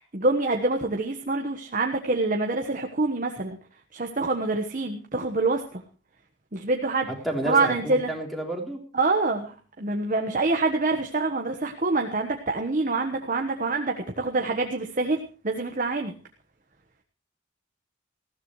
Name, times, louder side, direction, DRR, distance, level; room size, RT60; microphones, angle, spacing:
voice 1, 0.0-3.6 3.9-5.8 6.5-7.1 7.4-8.1 8.9-16.1, right 3 dB, 40° right, 3 dB, 1.2 m, -26 dB
voice 2, 7.1-8.8, right 1 dB, ahead, -1 dB, 3.6 m, -30 dB
19.5 x 15.5 x 3.2 m, 0.37 s
head